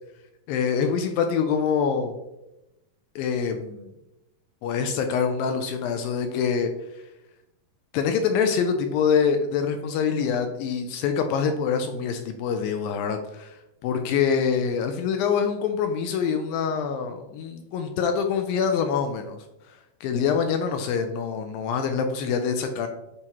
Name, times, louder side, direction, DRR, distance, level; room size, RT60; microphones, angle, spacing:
voice 1, 0.5-2.2 3.2-3.9 4.6-6.7 7.9-13.6 13.8-19.4 20.0-22.9, left 6 dB, 80° left, 6 dB, 2.1 m, -25 dB
9.8 x 4.5 x 3.0 m, 0.92 s
omnidirectional pair, 4.5 m